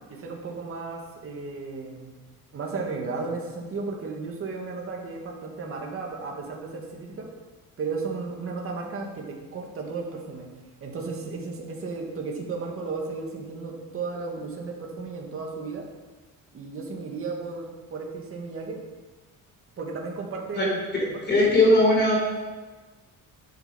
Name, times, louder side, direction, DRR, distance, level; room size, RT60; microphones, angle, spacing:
voice 1, 0.1-2.1 2.5-7.3 7.8-10.5 10.8-15.9 16.5-18.8 19.8-20.8 21.1-21.2, right 4 dB, 40° right, 0 dB, 2.2 m, -34 dB
voice 2, 21.3-22.2, left 1 dB, 30° left, -2 dB, 4.1 m, -18 dB
13.0 x 8.6 x 5.4 m, 1.3 s
cardioid pair, 170°, 34 cm